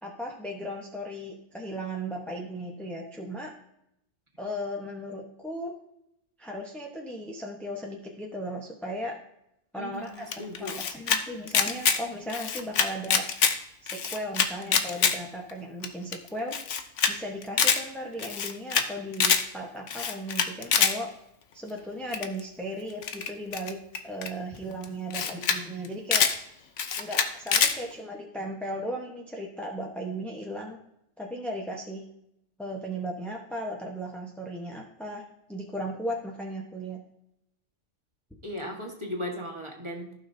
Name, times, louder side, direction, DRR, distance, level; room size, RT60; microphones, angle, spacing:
voice 1, 0.0-3.5 4.4-5.7 6.4-9.1 9.7-10.3 10.6-13.2 13.8-16.6 17.1-21.1 21.5-23.8 24.0-26.3 27.0-30.8 31.2-32.0 32.6-35.2 35.5-37.0, equal, ahead, -1 dB, 1.0 m, -36 dB
voice 2, 9.8-10.8 38.4-40.1, equal, 25° right, 0 dB, 1.6 m, -37 dB
Camera, 10.3-11.2 11.5-12.0 12.3-13.5 13.9-15.1 15.5-15.6 15.8-15.9 16.1-16.2 16.5-17.1 17.4-17.8 18.2-18.9 19.1-19.4 19.9-20.9 22.1-22.4 23.0-24.3 24.8-24.9 25.1-25.6 25.8-26.3 26.8-27.7, left 7 dB, 75° left, 1.1 m, -24 dB
15.0 x 6.1 x 2.7 m, 0.78 s
omnidirectional pair, 1.3 m